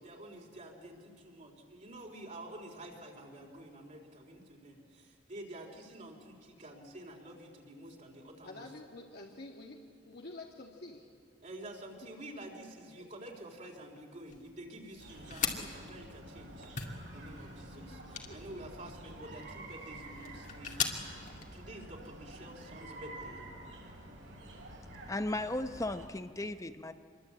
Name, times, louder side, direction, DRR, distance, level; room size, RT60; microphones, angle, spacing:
voice 1, 0.0-8.7 11.4-20.9 21.5-23.4, right 1 dB, 40° right, -1 dB, 3.9 m, -49 dB
voice 2, 8.4-11.1 12.0-12.1 12.9-13.0 18.3-18.6, left 2 dB, 60° left, -1 dB, 2.0 m, -49 dB
sound 1, 14.3-21.4, left 6 dB, 40° left, 2.5 m, -41 dB
sound 2, 15.0-26.1, right 1 dB, 75° right, 6.5 m, -49 dB
voice 3, 25.1-26.9, left 2 dB, 15° left, 10 dB, 0.9 m, -36 dB
26.0 x 22.5 x 8.7 m, 2.2 s
head